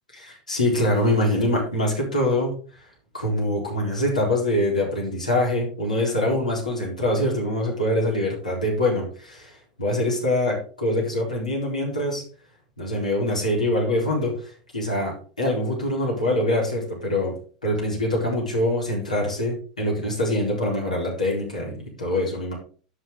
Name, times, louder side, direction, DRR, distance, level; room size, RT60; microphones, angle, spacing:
voice 1, 0.1-2.5 3.1-12.2 12.8-17.4 17.6-22.5, left 1 dB, 85° left, -3 dB, 4.3 m, -24 dB
13.0 x 5.9 x 3.8 m, 0.40 s
figure-of-eight pair, 85°, 4 cm